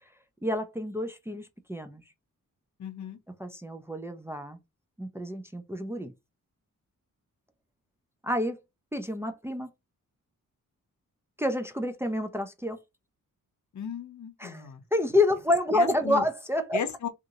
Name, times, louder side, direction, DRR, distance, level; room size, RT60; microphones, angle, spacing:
voice 1, 0.4-2.0 3.4-4.6 5.0-6.1 8.2-8.6 8.9-9.7 11.4-12.8 14.4-16.8, left 1 dB, 10° right, 0.4 m, -28 dB
voice 2, 2.8-3.2 13.7-14.8 15.7-16.2 16.7-17.1, left 7 dB, 60° left, 0.7 m, -35 dB
2.8 x 2.5 x 2.7 m
wide cardioid pair, 100°, 33 cm